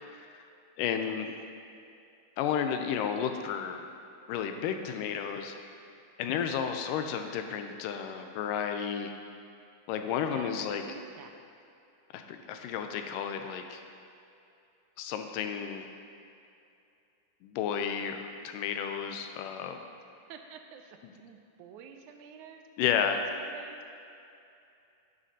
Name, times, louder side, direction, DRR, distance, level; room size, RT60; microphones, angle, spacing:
voice 1, 0.0-0.4 0.8-1.3 2.4-3.9 4.3-5.6 6.2-9.1 9.9-10.8 12.1-13.8 15.0-15.9 17.4-19.8 22.8-23.2, left 8 dB, 90° left, 6 dB, 2.2 m, -32 dB
voice 2, 7.1-7.5 10.3-11.5 20.3-23.8, right 7 dB, 80° right, 5 dB, 1.9 m, -49 dB
11.5 x 7.5 x 2.8 m, 2.6 s
omnidirectional pair, 3.7 m